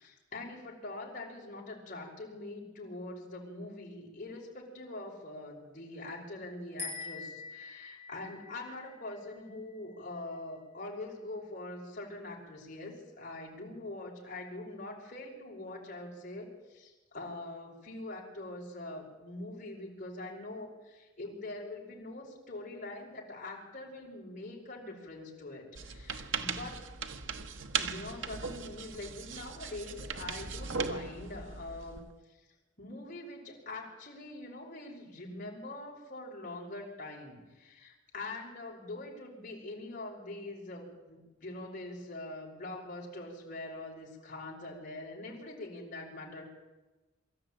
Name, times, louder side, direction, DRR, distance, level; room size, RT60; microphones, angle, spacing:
voice 1, 0.0-26.8 27.8-32.0 32.3-32.4 32.8-46.4, left 2 dB, 45° left, -2 dB, 5.6 m, -43 dB
sound 1, 6.8-10.2, left 4 dB, 15° right, 6.3 m, -45 dB
sound 2, 25.8-32.1, right 5 dB, 80° right, 1.3 m, -38 dB
23.5 x 14.0 x 8.9 m, 1.1 s
head